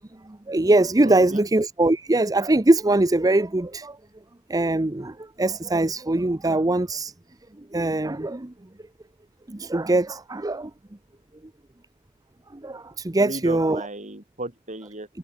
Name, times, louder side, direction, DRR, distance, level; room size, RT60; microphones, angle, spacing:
voice 1, 0.5-4.0 4.5-7.1 7.7-8.5 9.5-10.7 12.6-13.9, right 2 dB, 20° right, 0.7 m, -22 dB
voice 2, 1.0-1.4 13.2-15.1, right 2 dB, 35° right, 7.1 m, -35 dB
head